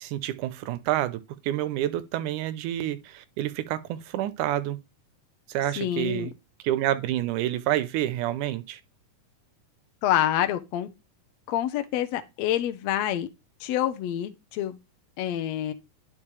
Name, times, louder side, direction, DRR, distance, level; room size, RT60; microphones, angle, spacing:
voice 1, 0.0-4.8 5.5-6.3 6.6-8.8, right 13 dB, 85° right, 2.1 m, -28 dB
voice 2, 5.8-6.3 10.0-10.9 11.5-13.3 13.6-14.8 15.2-15.7, left 12 dB, 70° left, 1.8 m, -27 dB
11.0 x 5.1 x 3.2 m
omnidirectional pair, 3.6 m